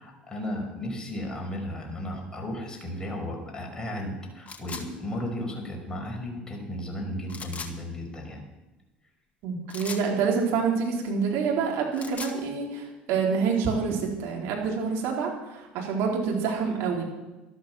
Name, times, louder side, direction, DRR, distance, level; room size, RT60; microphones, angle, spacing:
voice 1, 0.0-8.4, left 1 dB, 15° left, 0 dB, 5.6 m, -34 dB
sound 1, 4.5-4.9 7.3-7.7 9.7-10.1 11.8-12.4, left 5 dB, 30° left, 2.0 m, -38 dB
voice 2, 9.4-17.0, right 5 dB, 60° right, -1 dB, 4.0 m, -27 dB
13.0 x 12.5 x 6.1 m, 1.1 s
hypercardioid pair, 65°, 5 cm